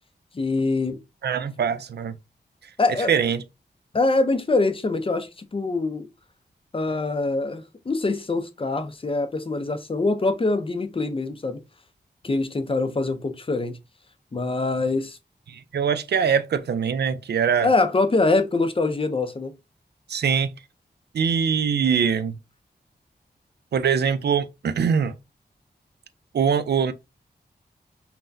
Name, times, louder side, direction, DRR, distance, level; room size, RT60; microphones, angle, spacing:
voice 1, 0.3-1.0 2.8-3.1 3.9-6.1 6.7-11.6 12.2-13.8 14.3-15.2 17.6-19.5, left 3 dB, 30° left, 0.5 m, -24 dB
voice 2, 1.2-2.1 3.1-3.4 15.5-17.7 20.1-20.5 21.1-22.4 23.7-25.1 26.3-26.9, right 7 dB, 75° right, 0.4 m, -23 dB
5.7 x 2.1 x 2.5 m
wide cardioid pair, 125°, 18 cm